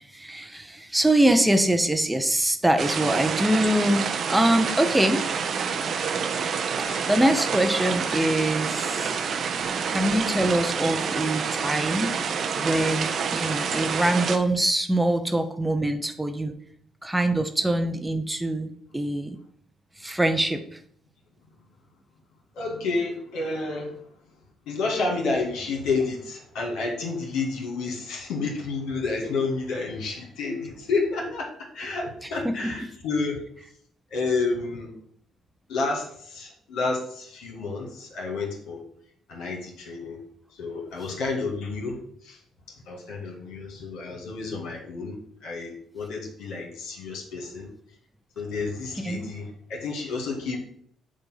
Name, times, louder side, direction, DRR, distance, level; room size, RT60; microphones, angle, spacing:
voice 1, 0.1-5.3 7.1-9.2 9.9-12.1 12.5-16.6 17.0-19.4 20.0-20.6 32.4-32.7 49.0-49.2, right 1 dB, 10° right, 7 dB, 0.7 m, -24 dB
Raining in Vancouver, 2.8-14.4, right 6 dB, 55° right, 0.7 m, -28 dB
voice 2, 6.8-7.1 22.5-23.9 24.6-33.4 34.1-34.9 35.7-38.8 39.3-40.2 40.5-42.4 42.7-47.7 48.3-50.6, left 3 dB, 75° left, 0 dB, 1.7 m, -30 dB
7.1 x 2.6 x 5.6 m, 0.64 s
hypercardioid pair, 60°, 0 cm